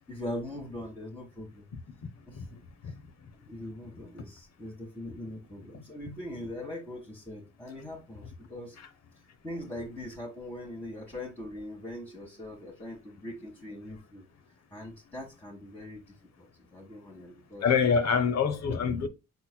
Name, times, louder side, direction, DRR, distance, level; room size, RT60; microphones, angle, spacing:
voice 1, 0.1-1.7 2.3-2.6 2.8-2.9 3.5-8.8 9.4-14.2 14.7-17.6, left 1 dB, 5° left, 1.6 m, -41 dB
voice 2, 17.6-19.1, left 6 dB, 60° left, 1.0 m, -25 dB
6.2 x 3.9 x 2.2 m
cardioid pair, 90°, 30 cm